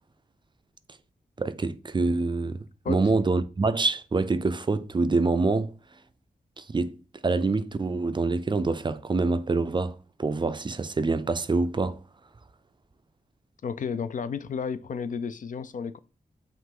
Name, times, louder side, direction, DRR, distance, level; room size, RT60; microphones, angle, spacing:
voice 1, 1.4-5.7 6.6-7.0 7.2-12.0, right 3 dB, 30° right, 0.4 m, -26 dB
voice 2, 13.6-16.0, left 6 dB, 55° left, 0.4 m, -32 dB
5.7 x 2.5 x 3.7 m
cardioid pair, 70°, 16 cm